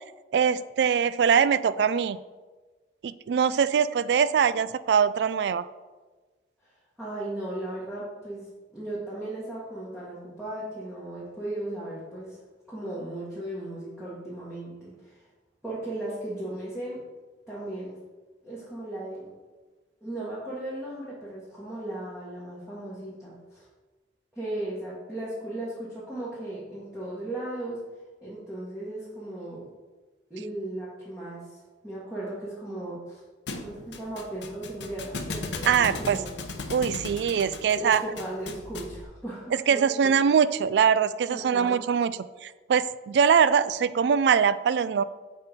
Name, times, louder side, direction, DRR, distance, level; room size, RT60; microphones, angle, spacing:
voice 1, 0.3-2.2 3.0-5.6 35.7-36.2 36.7-38.0 39.7-42.1 42.4-45.0, right 7 dB, 70° right, 15 dB, 0.3 m, -22 dB
voice 2, 7.0-12.4 12.7-15.3 15.6-17.0 17.5-18.0 18.4-19.3 20.0-23.7 24.3-27.8 28.2-29.7 30.3-33.2 33.6-36.3 37.7-39.9 41.3-41.8, right 1 dB, 5° right, -9 dB, 1.6 m, -36 dB
Thump thud, 33.5-39.0, left 3 dB, 85° left, 0.8 m, -37 dB
7.1 x 4.4 x 5.2 m, 1.3 s
head